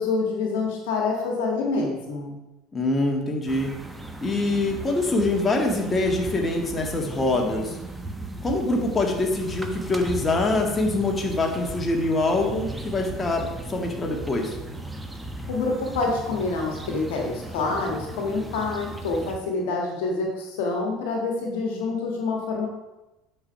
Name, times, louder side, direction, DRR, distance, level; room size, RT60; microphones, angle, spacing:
voice 1, 0.0-2.4 15.5-22.7, left 3 dB, 65° left, 1 dB, 1.5 m, -27 dB
voice 2, 2.7-3.7 4.2-7.8 8.4-14.6, left 2 dB, 20° left, 1 dB, 1.7 m, -24 dB
sound 1, 3.5-19.4, right 2 dB, 10° right, 1.0 m, -37 dB
8.6 x 4.6 x 5.5 m, 1.0 s
figure-of-eight pair, 65°, 0 cm